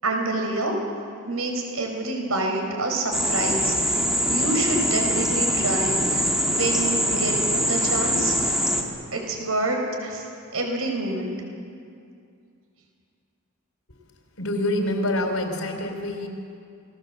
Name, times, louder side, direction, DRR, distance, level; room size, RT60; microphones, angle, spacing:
voice 1, 0.0-0.7 1.3-4.0 4.3-8.4 9.1-10.3 10.5-11.3, right 2 dB, 90° right, 2 dB, 5.1 m, -27 dB
sound 1, 3.1-8.8, equal, 5° right, 2.5 m, -23 dB
voice 2, 14.4-16.3, left 1 dB, 80° left, 4 dB, 4.2 m, -26 dB
29.5 x 20.0 x 7.7 m, 2.4 s
head